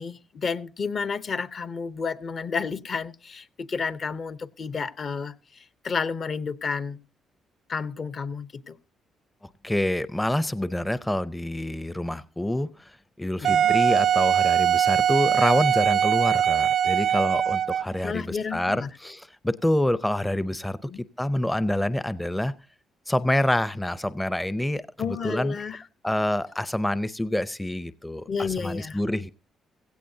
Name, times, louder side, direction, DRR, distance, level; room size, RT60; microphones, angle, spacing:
voice 1, 0.0-7.0 7.7-8.7 13.4-13.7 18.0-18.9 20.8-21.0 25.0-25.8 28.3-29.0, left 5 dB, 50° left, 0.8 m, -31 dB
voice 2, 9.6-20.8 21.2-22.5 23.1-25.6 26.0-29.3, left 1 dB, 10° left, 0.5 m, -27 dB
Wind instrument woodwind instrument, 13.4-18.0, right 9 dB, 65° right, 0.5 m, -21 dB
16.5 x 15.5 x 2.7 m
cardioid pair, 90°, 0 cm